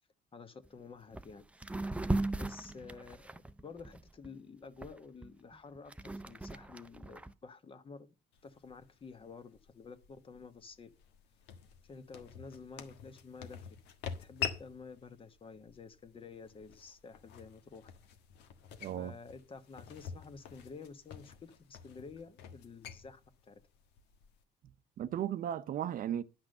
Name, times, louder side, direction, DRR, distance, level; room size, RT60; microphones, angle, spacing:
voice 1, 0.3-1.4 2.4-8.1 8.4-10.9 11.8-13.7 14.2-17.9 19.0-23.6, left 4 dB, 30° left, 1.3 m, -51 dB
sound 1, 0.6-0.7 1.1-1.3 1.6-4.3 4.8-7.3, right 2 dB, 5° right, 0.6 m, -37 dB
sound 2, 8.3-24.4, left 7 dB, 85° left, 1.4 m, -47 dB
voice 2, 18.8-19.1 24.6-26.2, right 10 dB, 55° right, 0.7 m, -36 dB
10.5 x 6.0 x 6.5 m
cardioid pair, 110°, 17 cm